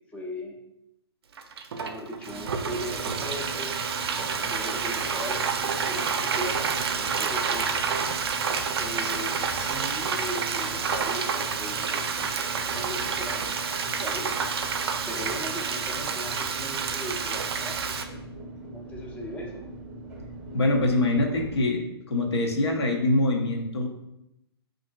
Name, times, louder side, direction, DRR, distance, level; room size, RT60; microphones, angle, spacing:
voice 1, 0.1-0.6 1.7-3.8 4.1-7.8 8.8-14.4 15.1-18.0 18.7-19.6, equal, 10° left, -2 dB, 0.5 m, -39 dB
Frying (food), 1.4-18.0, right 6 dB, 65° right, 0.4 m, -29 dB
sound 1, 2.2-21.7, right 1 dB, 10° right, 0.8 m, -41 dB
voice 2, 20.5-23.9, left 2 dB, 75° left, 2 dB, 0.8 m, -24 dB
5.5 x 2.6 x 2.2 m, 0.84 s
hypercardioid pair, 130°, 14 cm